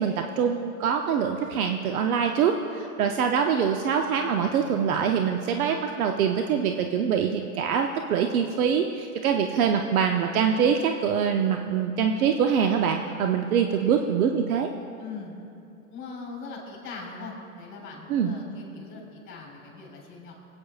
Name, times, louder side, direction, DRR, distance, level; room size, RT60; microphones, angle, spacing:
voice 1, 0.0-14.7 18.1-18.4, right 7 dB, 75° right, 4 dB, 0.7 m, -24 dB
voice 2, 13.8-14.1 15.0-15.3 15.9-20.3, left 4 dB, 25° left, -1 dB, 3.1 m, -41 dB
24.0 x 8.7 x 2.4 m, 2.6 s
hypercardioid pair, 125°, 43 cm